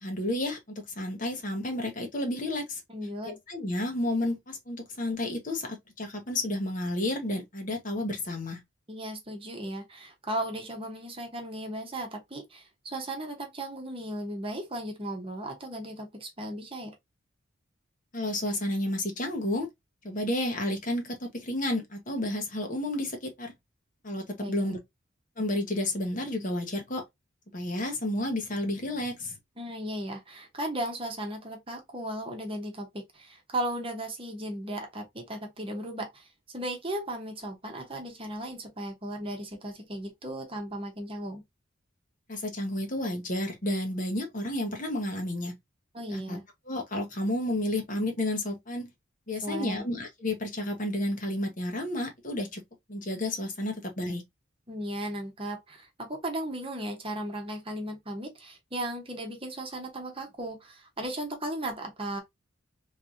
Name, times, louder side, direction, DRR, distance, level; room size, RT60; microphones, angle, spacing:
voice 1, 0.0-2.8 3.2-8.6 18.1-19.7 20.0-23.5 24.0-24.8 25.4-27.0 27.5-29.4 42.3-45.5 46.1-46.4 46.7-48.9 49.3-52.6 52.9-54.2, left 1 dB, 40° left, 1.1 m, -31 dB
voice 2, 2.9-3.4 8.9-16.9 24.4-24.8 29.6-41.4 45.9-46.4 49.4-49.9 54.7-62.2, right 1 dB, 25° right, 1.1 m, -36 dB
3.3 x 3.3 x 2.7 m
head